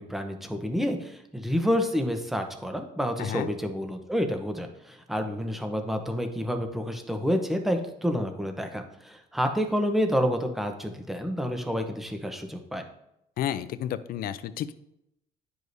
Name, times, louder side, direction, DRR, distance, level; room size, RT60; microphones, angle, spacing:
voice 1, 0.0-12.8, equal, ahead, 5 dB, 0.9 m, -29 dB
voice 2, 13.4-14.7, left 11 dB, 60° left, 12 dB, 0.5 m, -31 dB
11.0 x 4.8 x 2.7 m, 0.80 s
cardioid pair, 110°, 17 cm